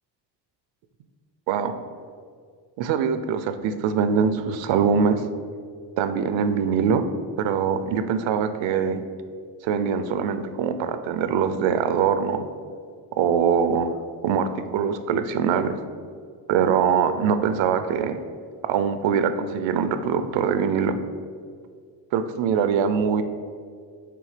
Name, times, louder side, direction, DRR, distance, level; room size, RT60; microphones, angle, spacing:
voice 1, 2.8-5.2 6.0-7.0 7.4-9.0 9.6-12.4 13.2-13.9 14.2-15.8 16.5-18.2 18.7-21.0 22.1-23.2, right 7 dB, 75° right, 10 dB, 0.6 m, -23 dB
6.9 x 3.7 x 4.9 m, 2.1 s
cardioid pair, 145°, 46 cm